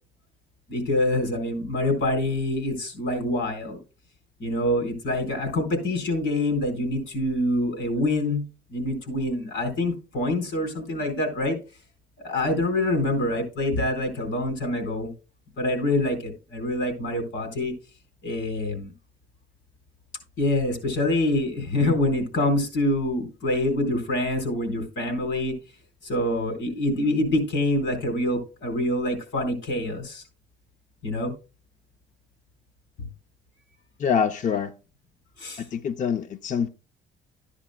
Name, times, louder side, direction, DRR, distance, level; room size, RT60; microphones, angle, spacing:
voice 1, 0.7-3.8 4.4-8.4 8.7-11.6 12.2-15.1 15.6-17.7 18.2-18.9 20.4-25.5 26.0-30.2 31.0-31.3 35.4-35.6, left 1 dB, 70° left, 4.1 m, -26 dB
voice 2, 34.0-34.7 35.6-36.7, left 7 dB, 40° left, 0.5 m, -25 dB
13.0 x 9.9 x 2.2 m
cardioid pair, 135°, 20 cm